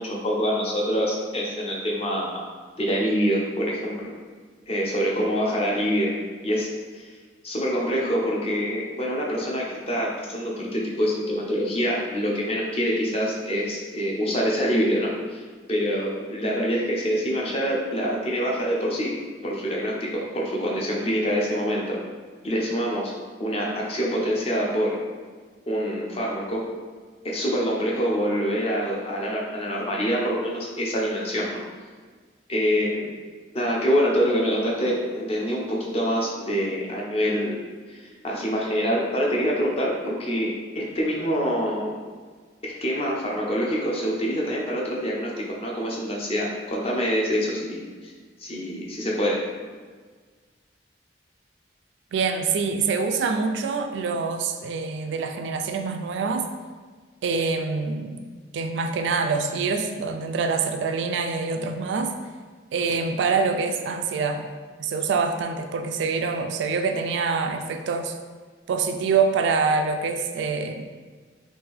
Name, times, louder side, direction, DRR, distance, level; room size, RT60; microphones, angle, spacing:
voice 1, 0.0-2.4 2.8-4.1 4.7-6.1 6.4-7.1 7.4-15.4 15.7-19.1 19.4-22.0 22.4-23.1 23.4-25.0 25.7-26.6 27.2-31.6 32.5-33.1 33.5-37.6 37.9-41.9 42.6-48.1 48.4-49.4, equal, 30° left, -3 dB, 0.6 m, -25 dB
voice 2, 52.1-56.5 57.2-58.2 58.5-62.1 62.7-64.4 64.8-68.1 68.7-70.8, right 4 dB, 75° right, 6 dB, 0.3 m, -25 dB
3.3 x 2.5 x 3.5 m, 1.5 s
head